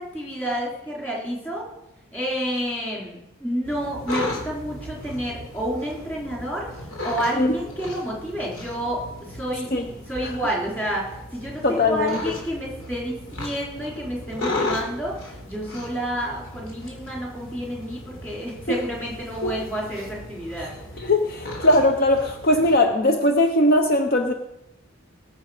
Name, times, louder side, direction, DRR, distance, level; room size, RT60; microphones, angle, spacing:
voice 1, 0.0-1.6 2.1-9.0 9.3-9.7 10.1-20.7, right 1 dB, 10° left, -3 dB, 3.6 m, -29 dB
sound 1, 3.6-22.8, left 2 dB, 85° left, 3.5 m, -36 dB
voice 2, 11.6-12.4 19.4-19.5 20.6-20.7 21.0-24.3, left 1 dB, 45° left, 5 dB, 0.8 m, -20 dB
19.0 x 6.9 x 5.0 m, 0.87 s
head